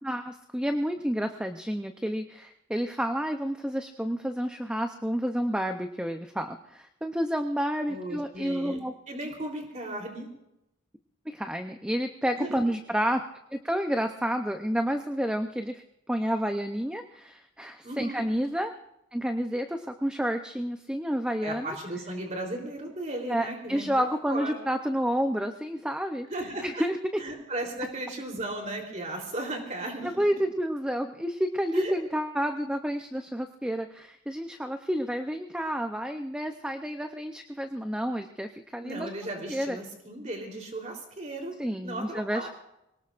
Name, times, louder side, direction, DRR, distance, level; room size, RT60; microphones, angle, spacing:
voice 1, 0.0-8.9 11.3-13.2 13.5-18.7 19.1-21.8 23.3-26.3 26.6-27.2 30.0-39.1 39.5-39.8 41.6-42.5, equal, 5° right, 6 dB, 0.6 m, -30 dB
voice 2, 7.9-10.3 12.3-12.5 17.8-18.2 21.4-24.6 26.3-26.8 27.2-30.2 31.7-31.9 38.8-41.5 41.8-42.5, right 1 dB, 35° right, 1 dB, 3.4 m, -36 dB
25.0 x 18.5 x 2.5 m, 0.87 s
head